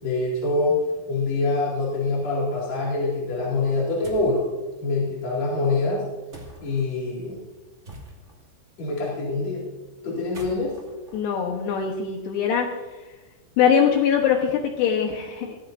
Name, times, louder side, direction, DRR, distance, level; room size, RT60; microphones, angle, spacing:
voice 1, 0.0-0.8 1.1-4.4 4.8-6.1 6.6-7.4 8.8-9.6 10.0-10.7, left 3 dB, 45° left, -5 dB, 3.0 m, -25 dB
sound 1, 4.0-4.4 6.3-6.8 7.8-8.5 10.1-12.1, right 1 dB, 25° right, 1.5 m, -44 dB
voice 2, 11.1-12.7 13.6-15.6, left 7 dB, 75° left, 1 dB, 3.0 m, -22 dB
19.0 x 15.5 x 2.6 m, 1.2 s
omnidirectional pair, 5.2 m